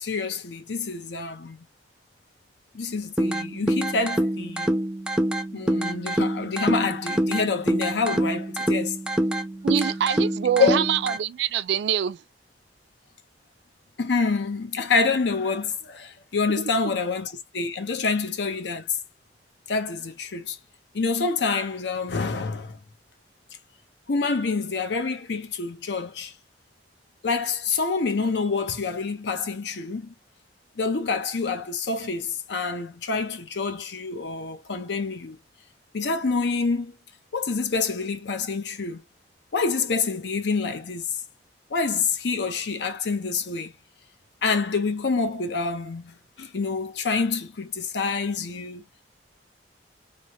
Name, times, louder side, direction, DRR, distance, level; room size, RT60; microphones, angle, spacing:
voice 1, 0.0-1.6 2.7-4.7 5.5-9.0 10.6-10.8 14.0-19.0 19.7-20.6 20.9-22.8 24.1-26.3 27.2-30.1 30.8-35.4 35.9-36.9 37.3-39.0 39.5-41.2 41.7-43.7 44.4-48.8, left 4 dB, 75° left, 0.7 m, -27 dB
sound 1, 3.2-11.2, right 1 dB, 5° right, 0.4 m, -26 dB
voice 2, 9.6-12.2, right 9 dB, 75° right, 0.3 m, -24 dB
3.0 x 2.1 x 2.8 m
head